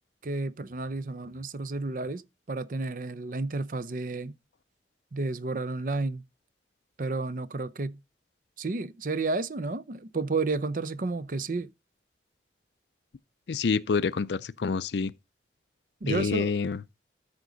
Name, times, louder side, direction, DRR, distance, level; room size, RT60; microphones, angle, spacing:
voice 1, 0.2-2.2 2.5-4.3 5.1-6.2 7.0-8.0 8.6-11.7 16.0-16.5, right 3 dB, 50° right, 0.6 m, -31 dB
voice 2, 13.5-15.1 16.1-16.8, left 5 dB, 75° left, 0.4 m, -27 dB
13.0 x 5.2 x 3.9 m
head